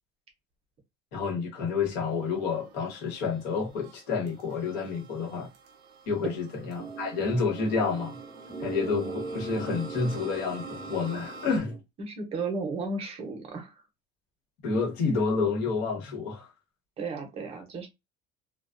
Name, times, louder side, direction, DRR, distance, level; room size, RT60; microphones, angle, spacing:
voice 1, 1.1-5.5 6.1-8.2 8.6-11.8 14.6-16.5, left 4 dB, 60° left, 1.1 m, -29 dB
sound 1, 1.9-11.6, right 3 dB, 65° right, 0.7 m, -48 dB
sound 2, 6.8-11.8, right 4 dB, 15° left, 1.0 m, -40 dB
voice 2, 12.0-13.8 17.0-17.9, right 3 dB, 30° right, 0.7 m, -34 dB
2.3 x 2.2 x 2.4 m
cardioid pair, 150°, 20 cm